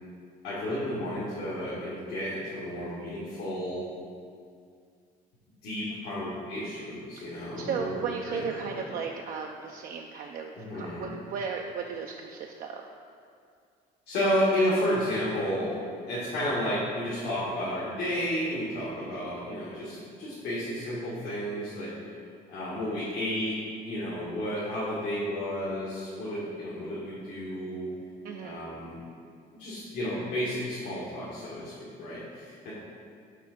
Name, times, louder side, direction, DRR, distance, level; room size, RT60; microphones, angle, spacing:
voice 1, 0.4-3.9 5.6-8.9 10.6-11.1 14.1-15.7 16.1-21.9 22.5-23.6 23.8-27.9 28.4-29.0 29.5-32.7, equal, 75° left, -9 dB, 1.7 m, -32 dB
voice 2, 7.6-12.8 28.2-28.6, right 6 dB, 60° right, 2 dB, 0.4 m, -35 dB
5.9 x 3.5 x 5.8 m, 2.2 s
cardioid pair, 110°, 17 cm